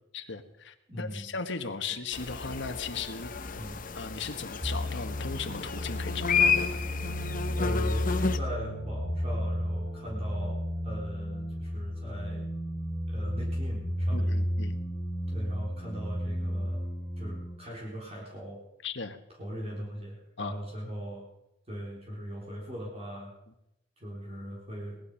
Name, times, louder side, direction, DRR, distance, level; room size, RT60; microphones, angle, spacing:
voice 1, 0.1-3.3 3.9-6.8 14.1-14.8 18.8-19.2 20.4-20.5, left 5 dB, 65° left, 8 dB, 1.4 m, -37 dB
voice 2, 0.9-1.3 3.5-3.8 7.6-12.5 13.1-14.4 15.3-16.9 17.2-18.6 19.4-21.2 21.7-23.3 24.0-25.0, equal, 35° right, -3 dB, 4.0 m, -40 dB
sound 1, 2.1-8.4, left 5 dB, 45° left, 0.9 m, -31 dB
sound 2, 4.6-17.6, equal, ahead, 2.3 m, -32 dB
19.5 x 12.0 x 5.6 m, 0.86 s
head